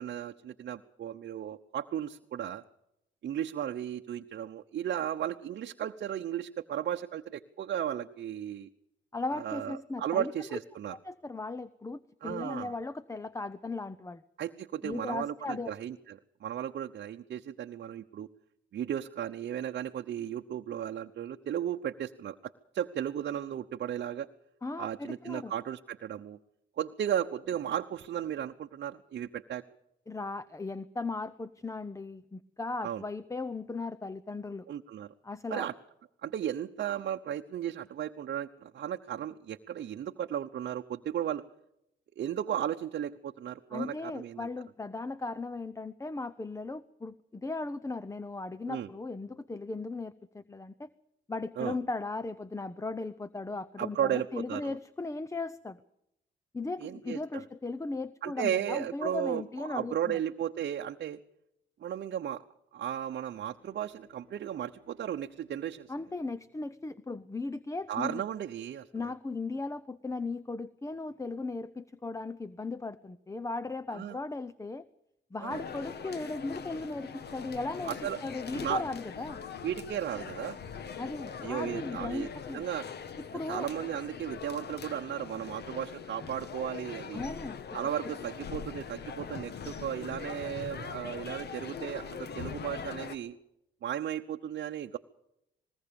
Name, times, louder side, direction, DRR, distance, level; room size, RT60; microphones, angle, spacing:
voice 1, 0.0-2.6 3.2-8.7 9.3-10.9 12.2-12.7 14.4-18.3 18.7-22.4 22.7-24.3 24.8-26.4 26.8-29.6 32.8-33.0 34.7-35.1 35.5-35.7 36.2-41.4 42.2-44.5 48.7-48.9 51.6-51.7 53.8-54.8 56.8-57.4 58.2-61.2 61.8-62.4 62.7-65.9 67.9-69.1 73.9-74.2 75.4-75.6 77.8-78.2 78.6-78.8 79.6-80.6 81.4-82.9 83.5-87.2 87.7-93.4 93.8-95.0, right 10 dB, 60° right, 4 dB, 0.9 m, -35 dB
voice 2, 9.1-10.3 10.9-14.2 14.8-15.8 24.6-25.5 30.1-34.7 35.2-35.7 43.7-50.9 51.3-55.8 56.5-60.2 65.9-68.2 68.9-74.8 75.3-78.0 78.2-79.4 81.0-82.6 83.3-83.7 87.1-87.6, left 3 dB, 15° left, 16 dB, 0.8 m, -37 dB
Bowed string instrument, 63.3-67.8, left 4 dB, 40° left, 7.8 m, -65 dB
sound 1, 75.5-93.2, left 6 dB, 55° left, 1.5 m, -42 dB
20.5 x 18.0 x 7.0 m, 0.82 s
cardioid pair, 90°, 20 cm